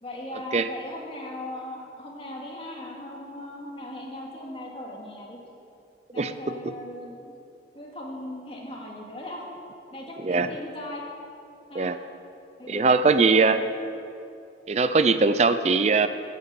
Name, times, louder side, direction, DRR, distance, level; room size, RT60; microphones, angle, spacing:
voice 1, 0.0-5.4 6.1-7.3 7.7-9.4 9.9-11.0 11.7-11.9 12.6-13.7 15.2-15.5, left 1 dB, 30° left, -2 dB, 2.4 m, -38 dB
voice 2, 12.7-13.6 14.7-16.1, right 4 dB, 35° right, 11 dB, 0.4 m, -21 dB
16.0 x 8.9 x 7.0 m, 2.7 s
head